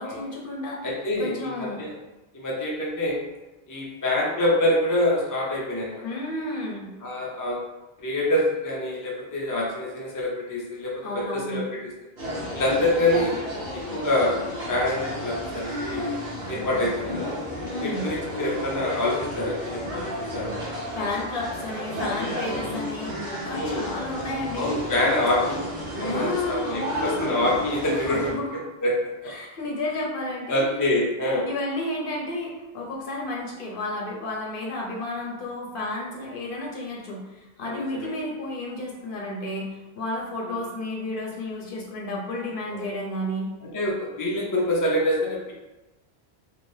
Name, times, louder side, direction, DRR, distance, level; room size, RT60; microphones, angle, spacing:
voice 1, 0.0-0.9 1.2-1.8 6.0-6.9 11.0-11.6 17.6-18.1 20.9-23.1 23.4-25.6 26.1-27.3 27.9-28.6 29.3-30.7 31.4-43.5, left 1 dB, 60° left, -2 dB, 0.8 m, -32 dB
voice 2, 0.8-1.9 2.3-3.2 3.7-6.0 7.0-7.6 8.0-10.9 11.3-11.6 12.5-13.4 13.7-14.3 14.7-16.1 16.5-17.3 17.8-20.5 23.5-23.8 24.5-25.6 26.0-28.3 28.8-28.9 30.5-31.5 37.6-38.1 42.7-42.9 43.7-45.5, left 1 dB, 25° left, -4 dB, 0.4 m, -25 dB
sound 1, 12.2-28.3, equal, 75° right, 1.2 m, -33 dB
3.2 x 2.6 x 2.6 m, 1.1 s
omnidirectional pair, 1.1 m